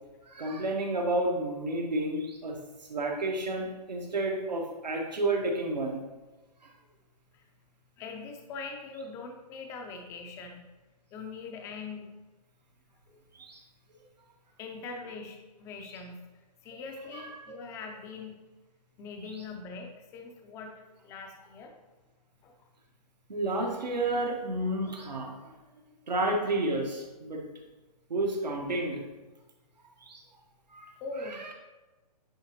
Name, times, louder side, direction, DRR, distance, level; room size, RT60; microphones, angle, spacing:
voice 1, 0.3-2.6 2.9-6.0 6.6-6.7 13.3-13.6 17.1-17.6 19.3-19.4 23.3-25.5 26.1-27.4 28.1-29.0 30.0-30.2 30.7-30.9 31.2-31.5, right 2 dB, 85° right, 1 dB, 1.5 m, -31 dB
voice 2, 8.0-10.6 11.1-12.1 13.1-13.2 14.6-16.2 16.6-18.4 19.0-20.7 21.0-21.7 22.4-22.5 31.0-31.5, left 4 dB, 15° left, 3 dB, 0.5 m, -42 dB
9.9 x 3.8 x 3.0 m, 1.1 s
hypercardioid pair, 140°, 21 cm